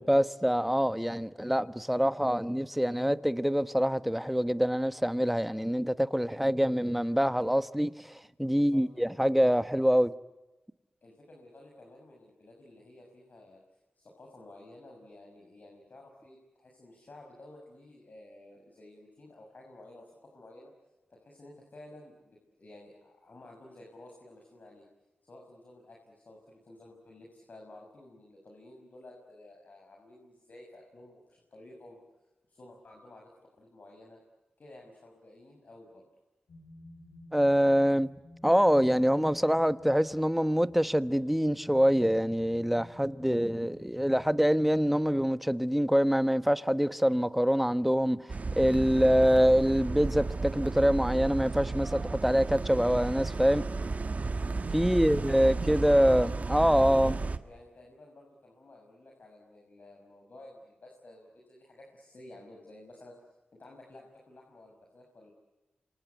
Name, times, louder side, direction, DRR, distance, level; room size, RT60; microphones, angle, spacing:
voice 1, 0.0-10.1 37.3-38.1 38.4-48.3 48.5-53.6 54.7-57.2, equal, 5° right, 1.2 m, -25 dB
voice 2, 8.5-9.0 11.0-13.6 14.0-20.7 21.1-24.9 25.3-32.0 32.5-33.3 33.6-34.2 34.6-36.1 54.8-56.1 56.6-63.1 63.5-65.3, left 1 dB, 55° left, 6.4 m, -53 dB
sound 1, 36.5-45.3, left 1 dB, 75° left, 5.4 m, -53 dB
sound 2, 48.3-57.4, right 3 dB, 45° right, 1.6 m, -33 dB
28.0 x 26.0 x 8.3 m
cardioid pair, 65°, 3 cm